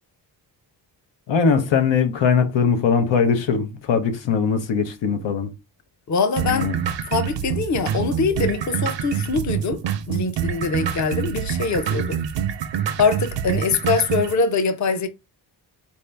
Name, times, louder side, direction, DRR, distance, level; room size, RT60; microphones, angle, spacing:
voice 1, 1.3-5.5 6.4-6.7, left 6 dB, 90° left, 0.8 m, -20 dB
voice 2, 6.1-6.7 7.1-9.8 10.1-12.2 13.0-15.1, left 4 dB, 40° left, 0.6 m, -23 dB
sound 1, 6.4-14.4, right 8 dB, 80° right, 0.6 m, -26 dB
4.4 x 2.7 x 3.3 m
wide cardioid pair, 105°, 43 cm